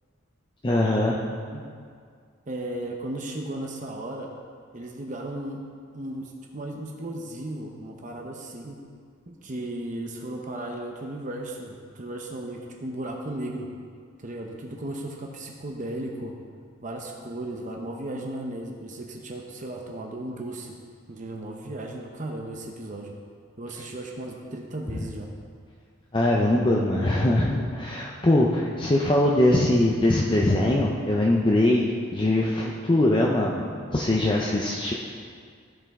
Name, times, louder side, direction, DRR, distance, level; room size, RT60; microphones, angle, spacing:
voice 1, 0.6-1.2 26.1-34.9, left 1 dB, 25° left, -3 dB, 0.6 m, -22 dB
voice 2, 1.3-1.7 2.5-4.3 4.7-5.6 5.9-8.8 9.3-13.7 14.2-16.3 16.8-20.8 21.1-23.2 23.6-25.3, right 1 dB, 35° right, 1 dB, 0.7 m, -35 dB
15.0 x 5.5 x 3.6 m, 2.1 s
head